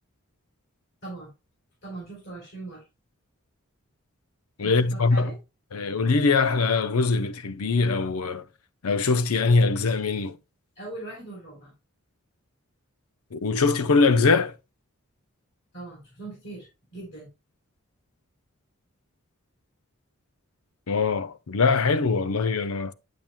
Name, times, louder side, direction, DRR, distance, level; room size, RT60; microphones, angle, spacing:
voice 1, 1.8-2.8 4.6-5.4 10.8-11.7 15.7-17.3, right 2 dB, 55° left, 3.8 m, -40 dB
voice 2, 4.6-5.3 5.7-8.5 8.8-10.4 13.3-14.6 20.9-22.9, left 4 dB, 85° left, 0.6 m, -22 dB
8.8 x 7.7 x 2.2 m
head